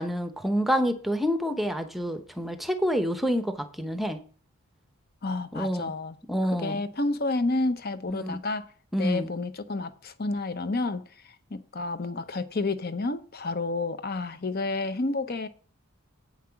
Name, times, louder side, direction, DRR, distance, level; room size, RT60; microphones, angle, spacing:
voice 1, 0.0-4.2 5.5-5.9 6.3-6.8 8.1-8.4 8.9-9.3, equal, ahead, 0.8 m, -28 dB
voice 2, 5.2-6.2 6.6-8.7 9.0-11.0 11.5-15.5, left 2 dB, 45° left, 0.7 m, -30 dB
8.6 x 5.9 x 5.7 m
head